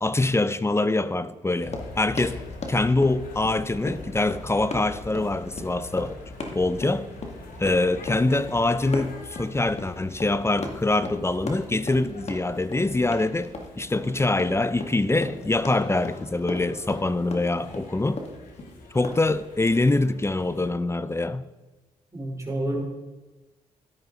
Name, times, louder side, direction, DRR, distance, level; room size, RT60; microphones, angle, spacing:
voice 1, 0.0-2.4 2.7-6.2 6.5-7.1 7.6-13.5 13.8-18.2 18.9-21.4, left 2 dB, 20° left, 0.6 m, -24 dB
sound 1, 1.5-20.7, left 3 dB, 80° left, 2.1 m, -44 dB
Run, 1.6-19.2, left 2 dB, 50° left, 2.0 m, -38 dB
voice 2, 22.1-22.8, right 1 dB, 20° right, 3.7 m, -29 dB
12.0 x 11.0 x 3.9 m
cardioid pair, 60°, 15 cm